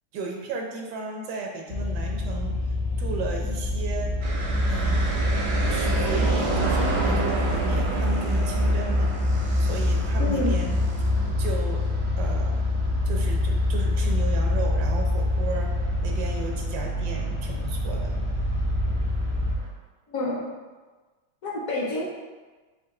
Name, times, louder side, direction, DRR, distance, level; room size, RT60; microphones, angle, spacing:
voice 1, 0.1-2.6 3.0-4.2 4.7-5.1 5.7-9.2 9.6-10.8 11.4-11.9 12.1-12.6 13.1-18.2, right 4 dB, 75° right, 1 dB, 1.2 m, -34 dB
sound 1, 1.7-19.6, left 2 dB, 85° left, 1.3 m, -26 dB
sound 2, 4.2-19.7, right 3 dB, 55° right, 0.7 m, -33 dB
sound 3, 4.4-11.3, right 2 dB, 90° right, 1.5 m, -28 dB
voice 2, 10.2-10.5 20.1-20.5 21.4-22.0, left 2 dB, 60° left, -4 dB, 1.0 m, -28 dB
4.8 x 2.5 x 4.1 m, 1.3 s
omnidirectional pair, 1.9 m